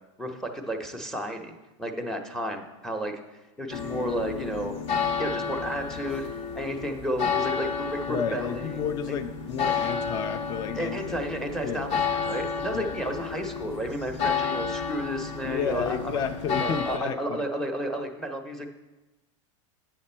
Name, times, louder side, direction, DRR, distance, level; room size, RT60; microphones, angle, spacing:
voice 1, 0.2-1.5 1.8-4.7 5.2-6.3 6.5-9.2 10.7-16.2 16.6-18.7, equal, 5° left, 5 dB, 0.7 m, -32 dB
sound 1, 3.7-17.0, left 6 dB, 70° left, 1.1 m, -31 dB
voice 2, 8.1-11.0 11.6-12.0 12.7-12.9 15.5-17.4, left 7 dB, 25° left, 9 dB, 0.3 m, -31 dB
8.3 x 6.8 x 4.3 m, 1.1 s
supercardioid pair, 140°, 16 cm